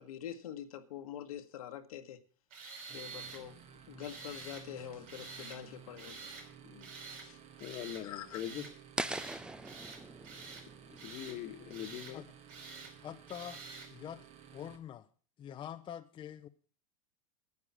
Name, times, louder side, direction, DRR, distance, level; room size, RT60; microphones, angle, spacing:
voice 1, 0.0-2.2 2.9-3.6 3.9-6.3 8.0-8.4, left 10 dB, 85° left, 1.5 m, -45 dB
Tools, 2.5-3.4 4.0-4.7 5.1-5.6 6.0-6.5 6.8-7.3 7.6-8.0 8.3-8.7 9.0-9.4 9.6-10.6 11.0-11.4 11.7-12.1 12.5-12.9 13.3-13.9, right 4 dB, 70° right, 5.3 m, -48 dB
sound 1, 2.9-14.8, right 8 dB, 35° right, 1.7 m, -55 dB
voice 2, 7.2-8.7 10.9-12.2 12.8-12.9, left 11 dB, 45° left, 1.4 m, -43 dB
sound 2, 9.0-12.0, right 2 dB, 5° right, 0.5 m, -42 dB
voice 3, 13.0-13.6 13.9-14.3 14.5-15.1 15.4-16.5, left 10 dB, 25° left, 0.7 m, -45 dB
9.8 x 9.6 x 7.3 m
supercardioid pair, 115°, 18 cm